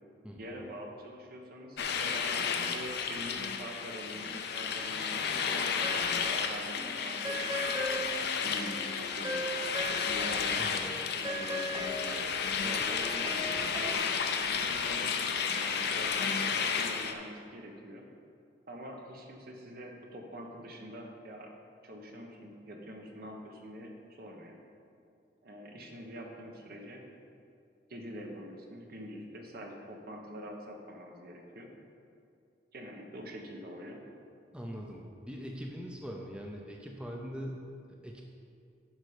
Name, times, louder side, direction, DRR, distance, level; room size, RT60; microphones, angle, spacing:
voice 1, 0.4-7.7 8.4-9.4 10.0-10.9 11.1-13.6 14.5-18.0 18.7-21.5 21.8-23.9 24.2-24.6 25.4-27.0 27.9-31.7 32.7-34.0, equal, 55° right, 1 dB, 1.1 m, -45 dB
sound 1, 1.8-17.1, left 6 dB, 65° left, 0.6 m, -32 dB
sound 2, 5.8-6.5 6.7-10.5 10.7-14.0, equal, 25° right, 0.9 m, -39 dB
voice 2, 34.5-38.3, equal, 5° right, 0 dB, 0.6 m, -42 dB
10.5 x 5.5 x 5.0 m, 2.5 s
head